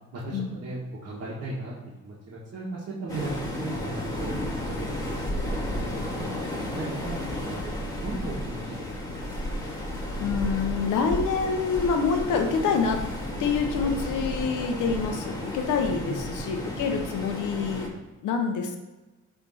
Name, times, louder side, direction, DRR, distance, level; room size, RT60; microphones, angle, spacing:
voice 1, 0.1-1.7 2.0-4.4 4.6-4.9 5.3-5.9 6.1-9.2 16.0-16.2, right 2 dB, 55° right, -5 dB, 1.5 m, -37 dB
Waves surf, 3.1-17.9, left 1 dB, 10° left, 1.9 m, -33 dB
voice 2, 10.2-13.0 13.4-17.9 18.2-18.8, left 5 dB, 80° left, 4 dB, 0.9 m, -27 dB
10.0 x 3.5 x 4.2 m, 1.1 s
cardioid pair, 90°, 30 cm